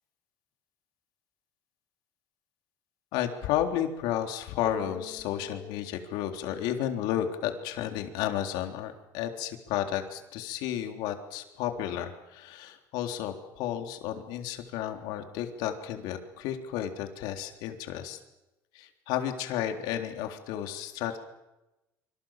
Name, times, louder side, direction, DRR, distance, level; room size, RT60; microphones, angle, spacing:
voice 1, 3.1-18.2 18.7-21.2, left 11 dB, 75° left, 5 dB, 3.6 m, -32 dB
sound 1, 4.6-7.2, left 4 dB, 15° left, 4.7 m, -45 dB
26.5 x 25.0 x 7.5 m, 0.98 s
cardioid pair, 135°, 7 cm